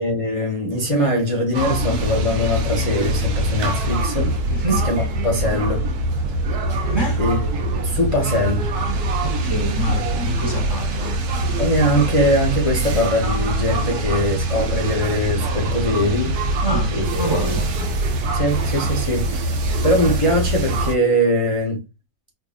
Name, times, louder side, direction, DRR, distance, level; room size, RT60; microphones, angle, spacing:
voice 1, 0.0-4.3 4.8-5.9 7.2-8.7 11.6-16.4 16.9-17.6 18.3-21.8, equal, 65° left, 0.3 m, -22 dB
sound 1, 1.5-20.9, right 1 dB, 70° right, 1.2 m, -23 dB
voice 2, 4.5-4.9 6.8-7.2 9.2-11.2 16.6-17.7, right 1 dB, 25° right, 0.6 m, -26 dB
4.5 x 2.6 x 2.3 m
omnidirectional pair, 1.8 m